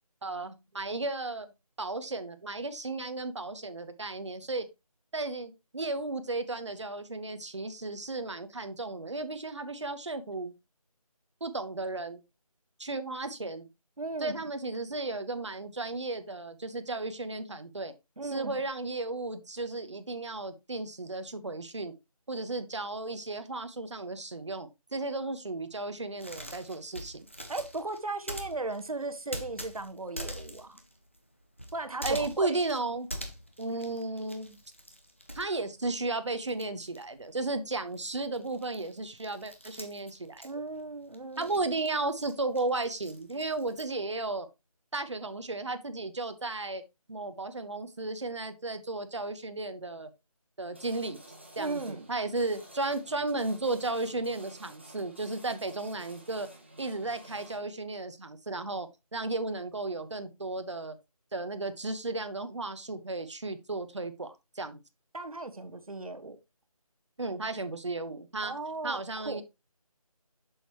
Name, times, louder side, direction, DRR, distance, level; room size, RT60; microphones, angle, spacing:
voice 1, 0.2-1.5 1.8-4.7 5.1-10.5 11.4-12.2 12.8-13.7 14.2-17.9 18.2-21.9 22.3-27.3 32.0-33.1 33.6-34.6 35.3-40.5 41.4-44.5 44.9-46.8 47.1-50.1 50.6-51.2 51.6-56.5 56.8-61.0 61.3-64.8 67.2-68.5 68.8-69.4, right 2 dB, 50° right, 1.0 m, -34 dB
voice 2, 14.0-14.4 18.2-18.6 27.5-30.8 31.7-32.6 40.4-41.7 51.6-52.0 65.1-66.4 68.4-69.4, right 3 dB, 70° right, 1.3 m, -37 dB
sound 1, 26.1-36.1 36.4-43.9, equal, 20° left, 0.6 m, -44 dB
sound 2, 50.7-57.6, right 1 dB, 20° right, 0.9 m, -52 dB
7.8 x 6.6 x 3.0 m
figure-of-eight pair, 175°, 19 cm